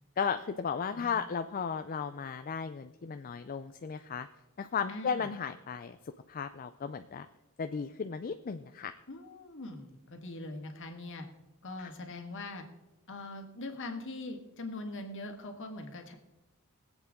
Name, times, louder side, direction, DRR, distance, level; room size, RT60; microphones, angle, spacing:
voice 1, 0.2-4.3 4.6-6.0 6.3-7.3 7.6-9.0 11.8-11.9, left 6 dB, 40° left, 9 dB, 0.4 m, -35 dB
voice 2, 4.9-5.3 9.1-11.3 11.6-12.6 13.1-16.2, left 2 dB, 60° left, 4 dB, 1.8 m, -42 dB
22.0 x 8.1 x 3.7 m, 1.0 s
head